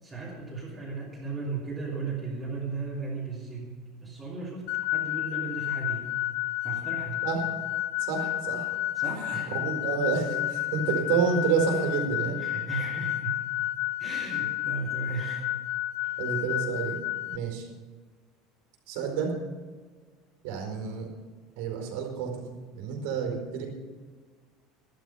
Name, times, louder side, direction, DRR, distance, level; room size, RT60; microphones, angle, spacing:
voice 1, 0.0-3.7 4.0-4.7 4.9-6.1 6.6-7.2 8.9-9.6 12.4-13.4 14.0-15.4 16.0-16.2, right 4 dB, 15° right, -8 dB, 3.1 m, -36 dB
sound 1, 4.7-17.4, left 16 dB, 65° left, 0.5 m, -31 dB
voice 2, 8.0-8.8 9.2-12.4 16.2-17.0 17.3-17.7 18.9-19.3 20.4-21.1 21.6-23.7, right 6 dB, 75° right, 1 dB, 4.5 m, -29 dB
13.5 x 12.0 x 5.6 m, 1.4 s
cardioid pair, 170°, 0 cm